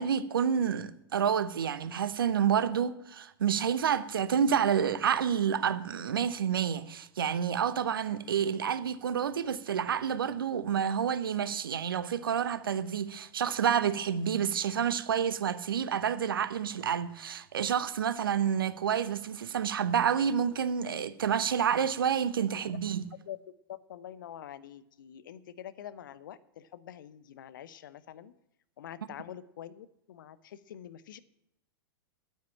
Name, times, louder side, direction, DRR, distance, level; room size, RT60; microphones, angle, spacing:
voice 1, 0.0-23.1, right 8 dB, 65° right, 0.9 m, -29 dB
voice 2, 23.9-28.3 28.8-31.2, left 10 dB, 55° left, 0.8 m, -46 dB
9.3 x 9.3 x 8.7 m
figure-of-eight pair, 100°, 13 cm